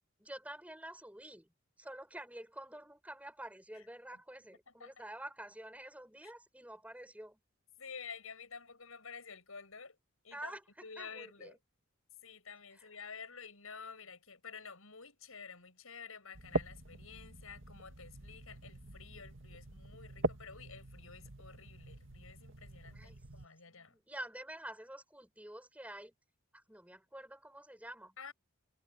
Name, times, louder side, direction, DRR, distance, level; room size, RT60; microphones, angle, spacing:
voice 1, 0.2-7.4 10.3-11.5 12.8-12.9 22.9-23.2 23.7-26.1 26.5-28.2, right 1 dB, 5° right, 6.9 m, -49 dB
voice 2, 7.8-10.0 10.2-11.6 12.2-24.0 28.2-28.3, left 5 dB, 90° left, 7.5 m, -51 dB
sound 1, 16.3-23.5, right 2 dB, 65° right, 2.1 m, -42 dB
head